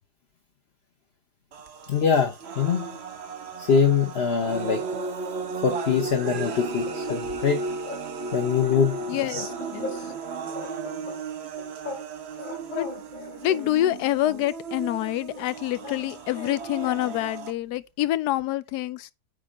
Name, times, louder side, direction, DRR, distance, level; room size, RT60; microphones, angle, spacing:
sound 1, 1.5-17.5, right 4 dB, 45° right, 1.0 m, -35 dB
voice 1, 1.9-3.0 3.6-4.8 5.6-7.6 8.3-9.0, left 6 dB, 45° left, 1.0 m, -23 dB
sound 2, 6.2-7.5 7.8-8.1 8.3-10.2 10.5-12.1 12.3-14.5 15.3-17.3, left 3 dB, 30° left, 1.5 m, -40 dB
voice 2, 9.1-10.0 12.7-12.9 13.4-19.1, left 14 dB, 75° left, 1.1 m, -27 dB
9.0 x 3.5 x 4.9 m
omnidirectional pair, 1.8 m